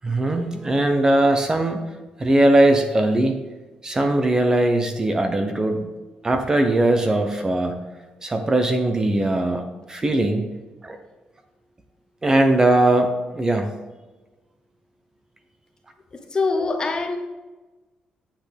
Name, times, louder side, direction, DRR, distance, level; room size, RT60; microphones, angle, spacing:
voice 1, 0.0-1.9 2.2-3.4 3.8-5.9 6.2-7.8 8.2-10.5 10.8-11.0 12.2-13.7, right 1 dB, 25° right, 6 dB, 0.8 m, -20 dB
voice 2, 16.3-17.2, left 3 dB, 30° left, 4 dB, 1.1 m, -23 dB
8.6 x 8.0 x 3.5 m, 1.2 s
cardioid pair, 125°, 3 cm